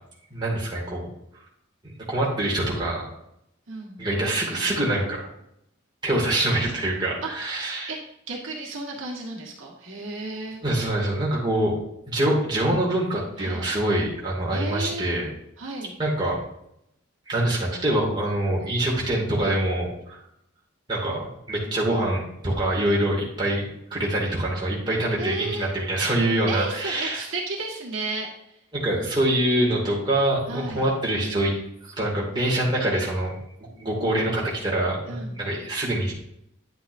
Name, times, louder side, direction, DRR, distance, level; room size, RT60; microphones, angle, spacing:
voice 1, 0.3-1.1 2.1-3.1 4.0-5.3 6.0-7.9 10.6-11.7 12.1-15.3 16.0-16.4 17.3-20.2 20.9-21.2 21.5-27.2 28.7-31.5 32.0-36.1, right 1 dB, 20° right, -4 dB, 2.4 m, -25 dB
voice 2, 3.7-4.1 7.2-8.0 8.3-10.6 13.4-13.6 14.5-15.1 15.6-15.9 25.2-25.7 26.5-28.3 30.5-30.9 35.1-35.4, right 3 dB, 70° right, -1 dB, 1.6 m, -33 dB
10.5 x 7.9 x 2.7 m, 0.79 s
head